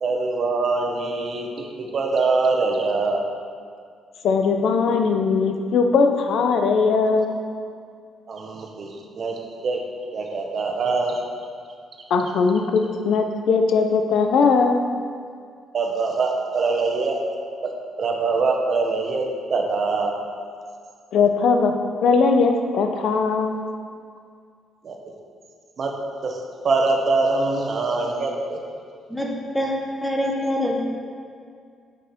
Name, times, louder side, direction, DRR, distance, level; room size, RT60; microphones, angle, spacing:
voice 1, 0.0-3.2 8.3-9.8 10.1-11.2 15.7-17.2 17.6-17.7 18.0-19.2 19.5-20.1 24.8-25.0 25.8-25.9 26.2-28.6, right 3 dB, 50° right, 1 dB, 1.1 m, -23 dB
voice 2, 4.2-7.3 12.1-14.8 21.1-21.7 22.0-23.5, left 4 dB, 75° left, 5 dB, 0.6 m, -19 dB
voice 3, 29.1-30.8, left 1 dB, 5° left, -1 dB, 1.2 m, -25 dB
7.7 x 5.0 x 4.3 m, 2.2 s
cardioid pair, 90°, 0 cm